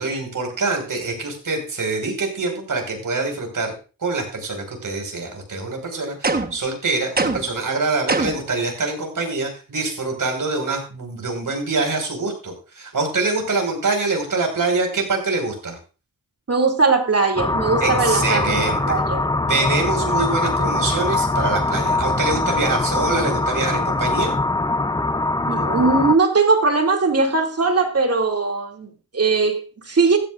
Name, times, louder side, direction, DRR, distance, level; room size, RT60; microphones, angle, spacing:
voice 1, 0.0-3.7 4.0-15.8 17.8-19.0 19.5-24.3, right 3 dB, 60° right, 3 dB, 5.1 m, -25 dB
sound 1, 6.2-6.7 7.2-7.6 8.1-8.5, right 3 dB, 25° right, 1.3 m, -22 dB
voice 2, 16.5-19.2 25.5-30.2, right 4 dB, 45° right, 4 dB, 2.6 m, -20 dB
sound 2, 17.4-26.2, left 2 dB, 10° left, 0.6 m, -22 dB
16.0 x 13.5 x 2.5 m, 0.34 s
wide cardioid pair, 100°, 35 cm